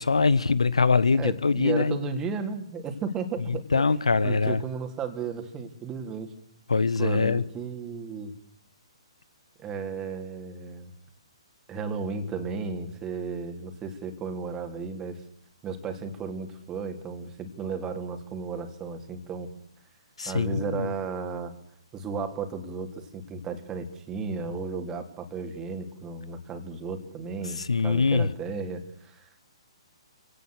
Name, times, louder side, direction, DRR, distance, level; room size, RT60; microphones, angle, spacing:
voice 1, 0.0-2.0 3.5-4.6 6.7-7.4 20.2-20.9 27.6-28.3, left 4 dB, 75° left, 1.3 m, -23 dB
voice 2, 1.1-3.8 4.2-6.3 7.0-8.3 9.6-10.9 11.7-15.2 15.6-19.5 20.3-21.5 21.9-29.3, right 5 dB, 20° right, 3.6 m, -34 dB
27.0 x 18.5 x 6.6 m
figure-of-eight pair, 130°, 3 cm